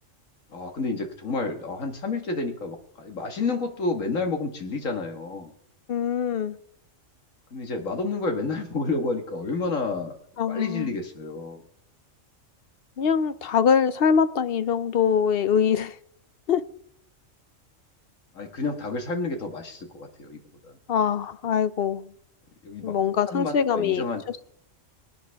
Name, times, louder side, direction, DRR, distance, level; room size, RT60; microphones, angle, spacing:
voice 1, 0.5-5.5 7.5-10.2 10.5-11.6 18.3-20.8 22.6-23.0 23.3-24.2, left 3 dB, 80° left, 2.2 m, -30 dB
voice 2, 5.9-6.6 10.4-10.9 13.0-16.0 16.5-16.6 20.9-22.1 22.8-24.5, left 7 dB, 55° left, 0.8 m, -23 dB
24.0 x 9.5 x 3.5 m
omnidirectional pair, 1.3 m